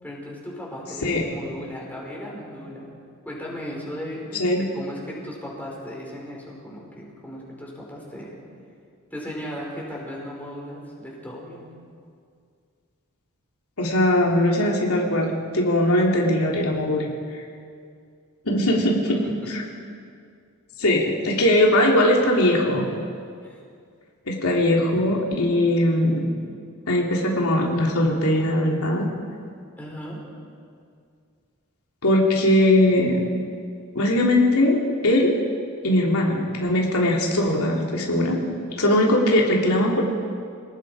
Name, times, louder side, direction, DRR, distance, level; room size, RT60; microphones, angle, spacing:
voice 1, 0.0-2.9 3.2-4.5 4.7-8.4 9.1-11.7 19.1-19.2 19.5-19.6 23.4-23.6 29.8-30.2 38.1-38.3, equal, 10° left, -3 dB, 4.8 m, -36 dB
voice 2, 1.0-1.3 4.4-4.6 13.8-15.3 15.5-17.1 18.4-19.2 20.8-22.8 24.3-26.3 26.9-29.1 32.0-33.2 33.9-35.3 35.8-38.4 38.8-40.0, left 1 dB, 85° left, -2 dB, 3.4 m, -20 dB
28.0 x 19.0 x 5.0 m, 2.2 s
head